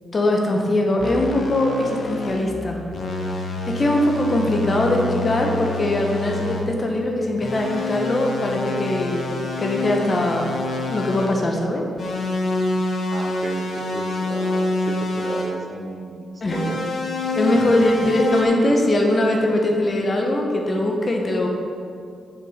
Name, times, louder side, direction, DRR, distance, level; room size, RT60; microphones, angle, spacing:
voice 1, 0.1-2.8 3.3-9.3 9.6-10.5 10.9-11.8 16.4-16.7 17.3-21.5, left 1 dB, 40° left, 1 dB, 1.2 m, -21 dB
sound 1, 1.0-2.5 2.9-6.7 7.4-11.4 12.0-15.6 16.5-18.4, left 2 dB, 60° left, 1.1 m, -27 dB
voice 2, 13.1-16.8 17.3-18.2, right 3 dB, 40° right, 5 dB, 0.7 m, -34 dB
7.0 x 5.7 x 5.1 m, 2.4 s
cardioid pair, 80°, 0 cm